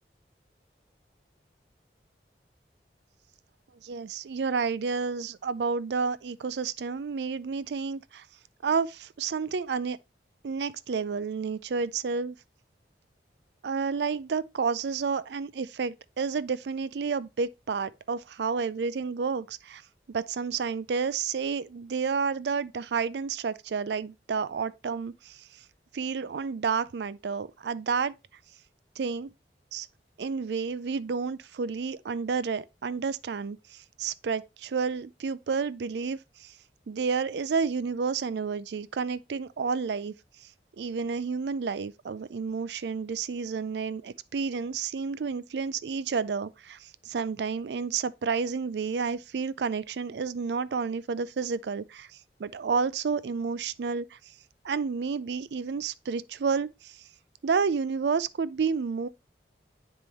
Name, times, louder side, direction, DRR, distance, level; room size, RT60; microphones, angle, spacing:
voice 1, 3.8-8.3 8.6-10.0 10.4-12.4 13.6-19.8 20.1-25.5 25.9-28.1 29.0-29.3 29.7-29.9 30.2-36.5 36.9-40.1 40.8-52.1 52.4-54.2 54.6-57.0 57.4-59.1, right 5 dB, 75° right, 0.4 m, -30 dB
9.7 x 3.7 x 3.0 m
head